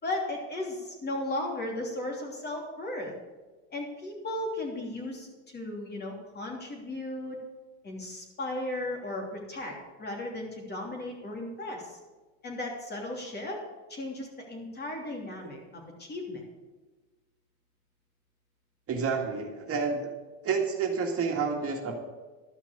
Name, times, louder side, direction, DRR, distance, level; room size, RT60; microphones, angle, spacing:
voice 1, 0.0-3.1 3.7-5.3 5.5-7.4 7.8-12.0 12.4-13.6 13.9-16.4, left 1 dB, 30° left, 0 dB, 3.1 m, -36 dB
voice 2, 18.9-20.1 20.4-22.0, right 5 dB, 40° right, 1 dB, 1.9 m, -29 dB
12.5 x 5.9 x 8.3 m, 1.2 s
cardioid pair, 120°, 35 cm